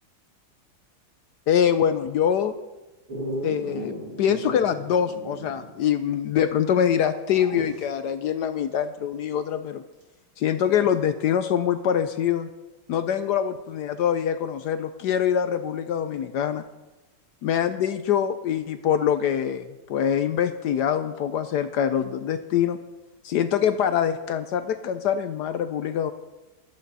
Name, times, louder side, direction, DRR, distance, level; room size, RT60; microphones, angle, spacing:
voice 1, 1.5-2.5 3.4-9.8 10.4-12.5 12.9-16.6 17.4-22.8 23.2-26.1, left 9 dB, 75° left, 10 dB, 0.9 m, -24 dB
Dog, 3.1-5.8 6.1-6.2 7.3-7.9 10.0-10.1, right 1 dB, 75° right, 3.0 m, -36 dB
14.0 x 11.5 x 4.1 m, 1.1 s
omnidirectional pair, 2.4 m